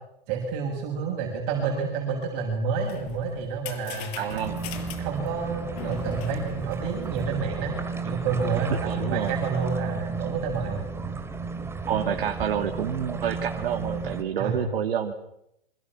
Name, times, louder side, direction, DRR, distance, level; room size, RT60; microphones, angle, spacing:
voice 1, 0.3-4.2 5.0-7.8 8.0-10.9 14.4-14.6, right 5 dB, 40° right, 1 dB, 7.0 m, -29 dB
sound 1, 2.6-7.6, left 8 dB, 40° left, 5.8 m, -41 dB
voice 2, 4.2-4.6 8.8-9.4 11.9-15.1, right 8 dB, 65° right, 4 dB, 2.8 m, -28 dB
sound 2, 4.3-14.2, right 4 dB, 10° right, 2.7 m, -33 dB
27.5 x 26.0 x 6.3 m, 0.80 s
hypercardioid pair, 120°, 30 cm